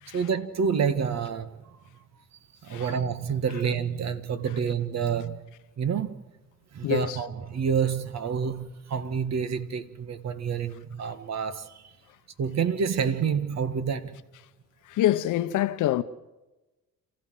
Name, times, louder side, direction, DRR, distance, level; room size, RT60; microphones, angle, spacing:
voice 1, 0.1-1.8 2.6-5.4 5.8-6.2 6.7-11.8 12.4-14.2, right 6 dB, 60° right, 1.9 m, -28 dB
voice 2, 2.7-3.0 6.8-7.2 14.8-16.0, left 13 dB, 85° left, 1.0 m, -26 dB
28.0 x 15.0 x 7.8 m
cardioid pair, 90°, 30 cm